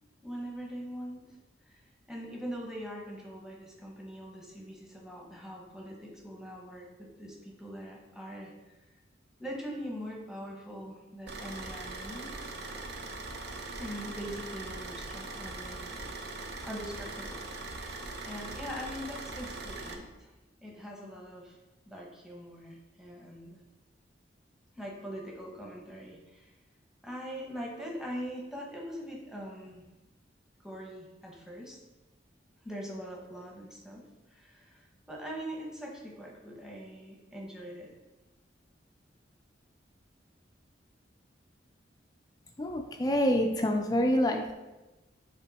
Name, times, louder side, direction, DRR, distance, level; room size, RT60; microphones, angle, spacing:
voice 1, 0.2-1.4 1.7-8.8 9.4-12.4 13.8-16.0 16.6-17.4 18.2-20.3 20.6-21.6 21.9-23.6 24.7-26.5 27.0-29.8 30.6-31.8 32.6-37.9, equal, 5° right, -2 dB, 1.1 m, -42 dB
Car / Idling, 11.3-19.9, right 2 dB, 60° right, 0.8 m, -41 dB
voice 2, 42.6-44.5, equal, 20° left, 3 dB, 0.4 m, -27 dB
7.2 x 3.7 x 4.1 m, 1.1 s
head